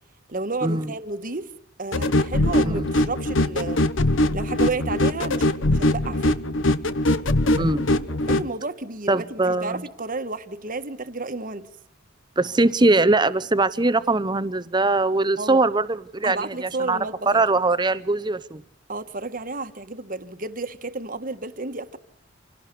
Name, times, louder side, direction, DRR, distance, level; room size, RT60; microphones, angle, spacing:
voice 1, 0.3-1.5 1.8-3.8 4.3-6.4 8.3-11.7 15.4-15.6 16.2-17.4 18.9-22.0, right 3 dB, 40° right, 1.5 m, -31 dB
sound 1, 1.9-8.5, left 1 dB, 65° left, 1.1 m, -22 dB
voice 2, 7.6-8.1 9.1-9.8 12.4-17.0 17.3-18.6, right 2 dB, 20° right, 0.8 m, -21 dB
27.0 x 17.5 x 6.8 m
head